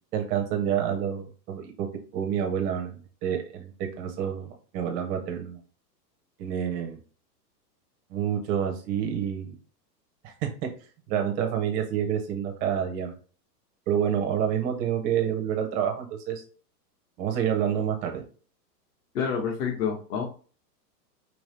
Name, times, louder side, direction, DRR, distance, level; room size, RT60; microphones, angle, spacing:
voice 1, 0.1-1.9 2.1-5.6 6.4-7.0 8.1-9.6 10.2-10.7 11.1-13.1 13.9-16.4 17.2-18.2, right 9 dB, 15° right, 3 dB, 0.5 m, -28 dB
voice 2, 19.1-20.2, left 6 dB, 65° left, -1 dB, 1.4 m, -28 dB
5.2 x 3.0 x 3.2 m, 0.39 s
hypercardioid pair, 145°, 49 cm